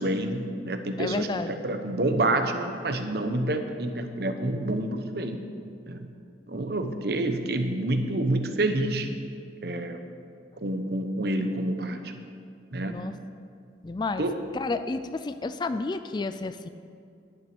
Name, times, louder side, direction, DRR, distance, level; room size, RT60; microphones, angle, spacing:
voice 1, 0.0-5.4 5.9-6.1 6.5-9.1 9.6-10.0 10.6-12.1 12.7-13.0 14.2-14.4, right 1 dB, 60° right, 7 dB, 0.9 m, -28 dB
voice 2, 1.0-1.5 12.9-13.1 13.8-14.2 14.5-16.7, left 3 dB, 25° left, 11 dB, 0.3 m, -31 dB
10.5 x 9.0 x 6.0 m, 2.4 s
head